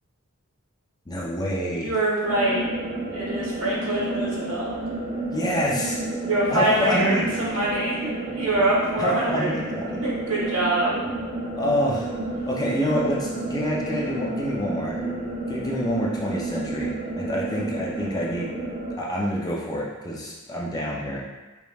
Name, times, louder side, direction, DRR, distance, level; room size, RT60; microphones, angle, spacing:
voice 1, 1.1-1.9 5.3-6.0 6.5-7.2 9.0-10.0 11.5-12.1 12.5-15.0 15.5-18.5 19.0-21.2, equal, 20° left, -4 dB, 0.5 m, -27 dB
voice 2, 1.7-2.6 3.1-4.7 6.2-9.5 10.0-11.1, right 1 dB, 75° right, -6 dB, 1.4 m, -24 dB
sound 1, 2.2-18.9, right 2 dB, 30° right, 0.7 m, -31 dB
5.1 x 2.9 x 2.3 m, 1.2 s
head